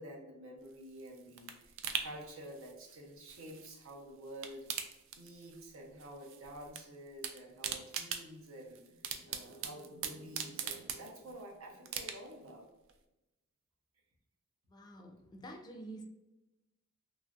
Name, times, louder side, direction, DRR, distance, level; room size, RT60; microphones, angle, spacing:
voice 1, 0.0-4.8 5.2-8.8 9.3-12.6, right 1 dB, 85° right, 0 dB, 0.8 m, -49 dB
sound 1, 0.7-3.9 4.2-5.7 6.0-6.8 7.1-11.4 11.8-12.5 12.9-13.0, right 8 dB, 65° right, 0.3 m, -42 dB
sound 2, 8.7-12.3, right 4 dB, 35° right, 0.9 m, -58 dB
voice 2, 14.7-16.0, right 1 dB, 20° left, 4 dB, 0.3 m, -48 dB
3.0 x 2.4 x 2.5 m, 0.96 s
head